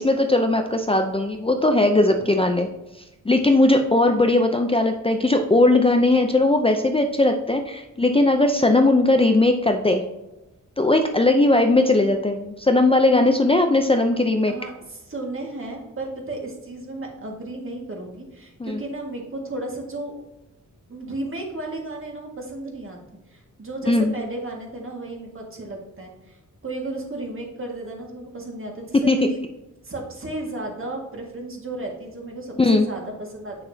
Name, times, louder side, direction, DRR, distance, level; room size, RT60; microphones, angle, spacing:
voice 1, 0.0-2.7 3.3-10.0 10.8-14.5 18.6-18.8 23.9-24.1 29.1-29.2 32.6-32.9, left 2 dB, 20° left, 4 dB, 0.5 m, -19 dB
voice 2, 2.2-2.6 14.5-20.2 20.9-23.0 23.3-29.4 29.8-33.6, right 2 dB, 40° right, 0 dB, 1.9 m, -34 dB
6.8 x 6.6 x 2.8 m, 0.98 s
wide cardioid pair, 105°, 31 cm